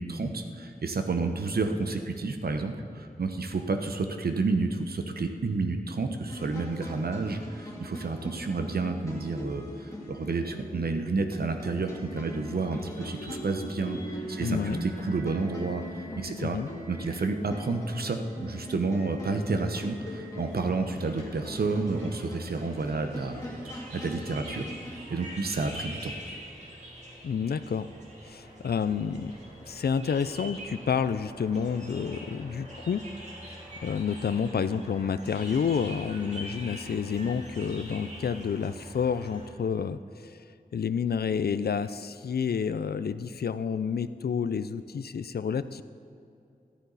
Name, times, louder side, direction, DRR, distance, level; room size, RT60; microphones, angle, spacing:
voice 1, 0.0-15.8 16.2-16.6 16.9-23.5 23.7-24.7 25.1-26.1, right 3 dB, 75° right, 6 dB, 1.0 m, -30 dB
sound 1, 6.3-25.0, equal, 20° left, 2.9 m, -41 dB
voice 2, 14.4-14.8 16.4-16.7 27.2-27.9 28.3-29.3 29.7-33.0 33.8-40.4 40.7-45.8, left 6 dB, 85° left, 13 dB, 0.5 m, -29 dB
sound 2, 20.4-39.5, equal, 45° right, 3.2 m, -45 dB
14.0 x 13.5 x 4.1 m, 2.5 s
wide cardioid pair, 85°, 16 cm